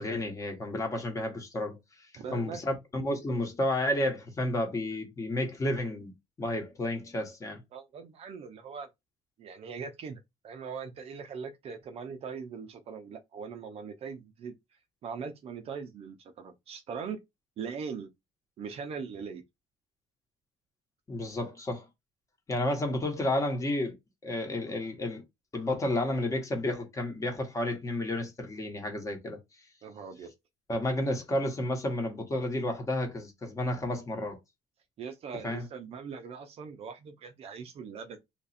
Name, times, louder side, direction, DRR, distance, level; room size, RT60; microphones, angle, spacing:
voice 1, 0.0-1.8 2.3-6.1 6.4-7.6 21.1-21.9 22.5-23.9 24.2-25.2 25.5-29.4 30.7-34.4 35.4-35.6, left 1 dB, 25° left, 1.1 m, -31 dB
voice 2, 2.2-2.6 7.7-8.9 9.4-10.2 10.4-14.5 15.0-17.2 17.6-18.1 18.6-19.4 29.8-30.3 35.0-38.2, right 6 dB, 45° right, 0.6 m, -40 dB
2.9 x 2.5 x 4.2 m
cardioid pair, 150°, 14 cm